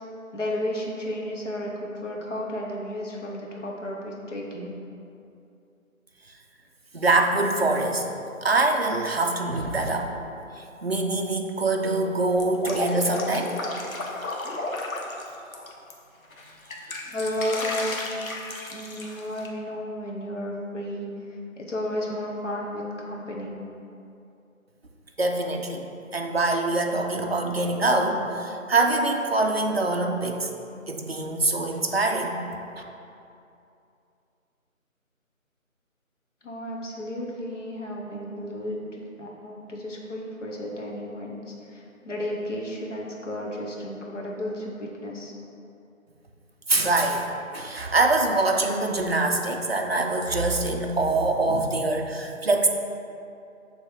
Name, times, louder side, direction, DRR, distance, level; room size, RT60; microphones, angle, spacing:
voice 1, 0.3-4.8 17.0-18.0 18.7-21.1 21.6-23.6 36.4-45.3, left 1 dB, 60° left, -2 dB, 1.1 m, -33 dB
voice 2, 6.9-8.1 8.4-10.1 10.5-13.6 16.9-17.0 25.2-25.9 26.1-30.5 30.9-32.4 32.7-32.8 46.7-52.7, right 2 dB, 50° right, 2 dB, 0.5 m, -24 dB
Drip, 12.4-15.9 16.3-19.5, left 2 dB, 80° left, 1.0 m, -33 dB
6.8 x 3.2 x 4.3 m, 2.6 s
figure-of-eight pair, 165°, 41 cm